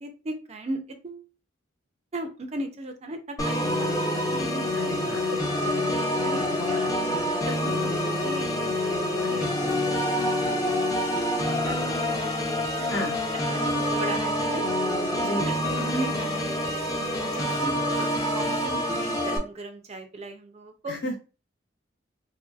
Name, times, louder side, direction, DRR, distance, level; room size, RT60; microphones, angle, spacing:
voice 1, 0.0-1.2 2.1-3.9 4.3-5.8 6.2-7.0 7.4-9.5 10.1-10.2 10.5-12.2 12.8-13.0 13.5-14.6 15.2-16.6 17.0-21.0, right 2 dB, 35° right, 6 dB, 0.4 m, -37 dB
Organ, 3.4-19.4, left 1 dB, 20° left, 0.5 m, -26 dB
voice 2, 4.7-5.3 6.5-7.5 9.2-9.3 12.9-13.1 15.2-15.5 20.9-21.2, left 1 dB, 60° left, 1 dB, 1.0 m, -34 dB
3.4 x 2.6 x 2.3 m, 0.32 s
head